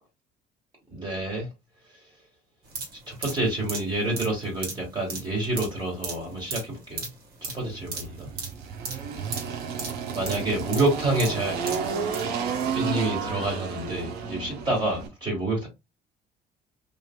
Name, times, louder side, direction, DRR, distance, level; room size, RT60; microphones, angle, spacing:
voice 1, 0.9-1.5 3.1-7.1 7.4-8.3 10.1-11.6 12.7-15.7, right 2 dB, 25° right, 1.6 m, -28 dB
sound 1, 2.7-12.3 12.6-12.7, right 4 dB, 65° right, 1.7 m, -37 dB
Engine, 7.7-15.1, right 6 dB, 80° right, 0.8 m, -32 dB
3.2 x 2.6 x 2.2 m
cardioid pair, 110°, 17 cm